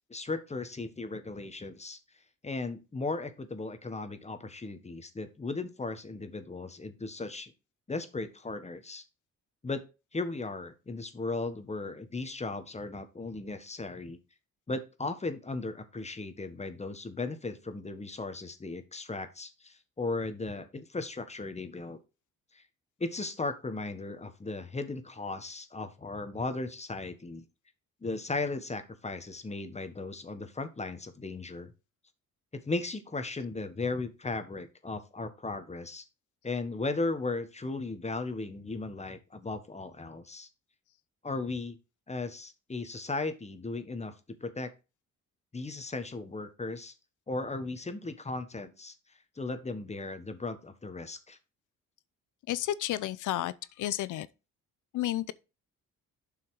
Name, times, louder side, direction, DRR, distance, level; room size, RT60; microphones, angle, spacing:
voice 1, 0.1-2.0 2.4-7.5 7.9-9.0 9.6-9.8 10.1-14.2 14.7-22.0 22.5-22.6 23.0-27.4 28.0-31.7 32.5-36.0 36.4-40.5 41.2-41.8 42.1-44.1 44.4-44.7 45.5-46.9 47.3-48.9 49.4-51.4, left 3 dB, 20° left, 1.5 m, -36 dB
voice 2, 52.5-54.3 54.9-55.3, left 13 dB, 80° left, 0.8 m, -31 dB
7.8 x 5.7 x 4.9 m
cardioid pair, 90°, 30 cm